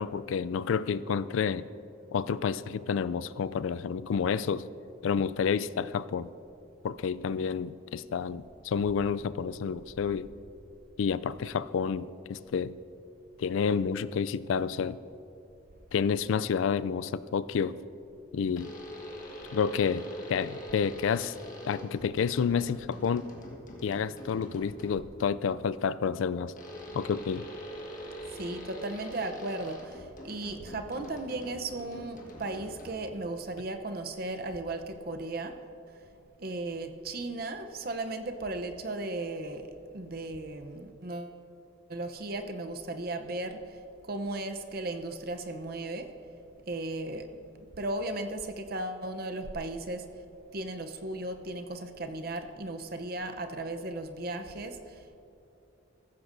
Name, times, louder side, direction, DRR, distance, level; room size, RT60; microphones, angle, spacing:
voice 1, 0.0-1.7 2.1-4.7 5.0-6.3 6.8-10.3 11.0-12.8 13.4-15.0 15.9-17.8 18.3-18.7 19.5-21.3 21.7-23.3 23.8-26.5 26.9-27.4, left 6 dB, 80° left, 16 dB, 0.3 m, -29 dB
sound 1, 18.6-25.2 26.6-33.2, equal, 40° left, 1.5 m, -44 dB
voice 2, 28.3-35.6 36.4-41.3 41.9-43.8 44.1-46.1 46.7-47.3 47.8-50.1 50.5-55.2, right 2 dB, 45° right, 7 dB, 0.7 m, -36 dB
15.0 x 14.0 x 2.6 m, 2.7 s
head